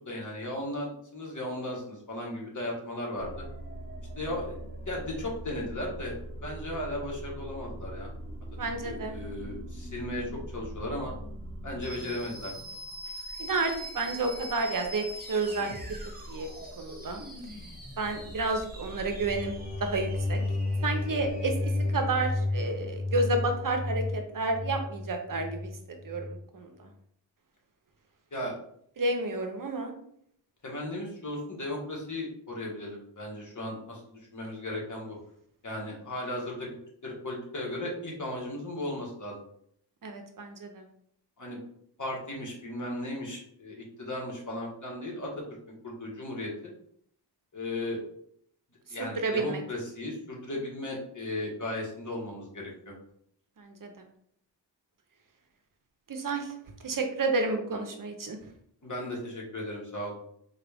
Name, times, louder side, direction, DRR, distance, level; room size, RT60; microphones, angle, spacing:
voice 1, 0.0-3.4 4.2-4.6 4.9-6.1 6.4-8.1 8.8-11.1 11.6-12.5 28.3-28.6 30.6-35.2 35.6-36.8 37.0-39.4 41.4-41.6 42.0-45.3 45.8-46.7 47.5-48.0 48.9-52.9 58.8-60.1, left 1 dB, 45° left, -2 dB, 1.3 m, -36 dB
sound 1, 3.2-22.5, right 1 dB, 20° right, 1.0 m, -42 dB
voice 2, 8.6-9.2 13.4-16.0 16.3-16.5 16.8-17.2 18.0-20.4 20.8-21.5 21.9-26.9 29.0-29.9 40.0-40.8 49.0-49.6 53.6-54.1 56.1-56.5 56.8-58.4, right 3 dB, 50° right, 5 dB, 0.6 m, -31 dB
sound 2, 19.1-26.4, left 2 dB, 25° left, 0.4 m, -32 dB
3.9 x 2.4 x 3.4 m, 0.68 s
cardioid pair, 65°, 43 cm